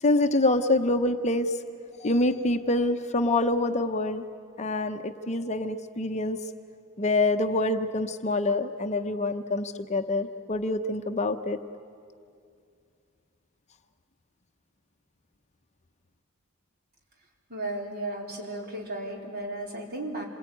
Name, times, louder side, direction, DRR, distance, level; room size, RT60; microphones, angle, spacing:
voice 1, 0.0-1.6 2.0-4.2 4.6-6.4 7.0-11.6, left 2 dB, 30° left, 7 dB, 0.8 m, -26 dB
voice 2, 17.5-20.3, right 1 dB, 45° right, 0 dB, 3.9 m, -34 dB
27.0 x 21.5 x 9.2 m, 2.4 s
head